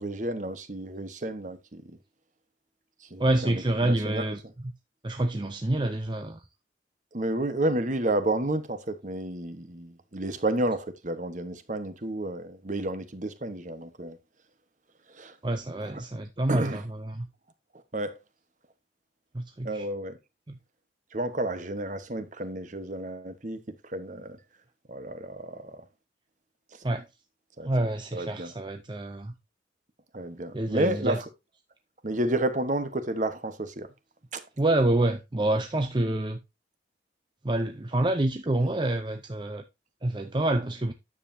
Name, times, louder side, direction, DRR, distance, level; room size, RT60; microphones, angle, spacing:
voice 1, 0.0-1.8 3.1-4.2 7.1-14.2 15.1-15.3 15.8-15.9 16.5-16.8 17.9-18.2 19.6-20.2 21.1-23.6 23.8-24.4 24.9-25.8 27.6-27.7 28.1-28.5 30.1-31.3 32.0-33.9 34.3-34.4, right 1 dB, 40° right, 1.1 m, -31 dB
voice 2, 3.2-4.7 5.0-6.4 15.4-17.3 19.3-19.9 20.5-20.6 26.8-27.0 27.7-29.3 30.5-31.2 34.6-36.4 37.4-39.6 40.0-40.9, right 1 dB, 25° right, 0.6 m, -27 dB
9.8 x 7.4 x 2.7 m
head